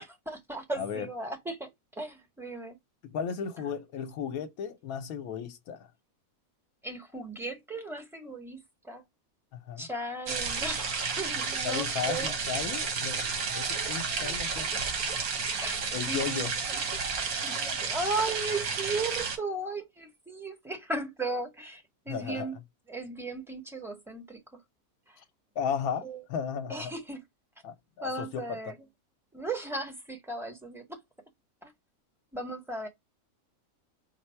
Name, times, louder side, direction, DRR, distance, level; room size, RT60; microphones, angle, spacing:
voice 1, 0.0-1.7 2.0-2.8 6.8-8.6 8.8-9.0 9.8-12.3 13.8-13.9 14.2-14.7 15.6-15.8 16.1-16.8 17.4-22.6 22.9-24.4 26.0-26.2 26.7-27.2 28.0-28.7 29.3-31.0 31.6-31.7 32.3-32.9, right 2 dB, ahead, 0.8 m, -36 dB
voice 2, 0.8-1.1 3.0-5.9 9.5-9.9 11.6-14.7 15.9-16.6 22.1-22.5 25.6-26.9 27.6-28.7, left 7 dB, 80° left, 1.1 m, -35 dB
sound 1, 10.3-19.4, right 5 dB, 85° right, 1.5 m, -31 dB
4.4 x 2.0 x 4.3 m
omnidirectional pair, 1.5 m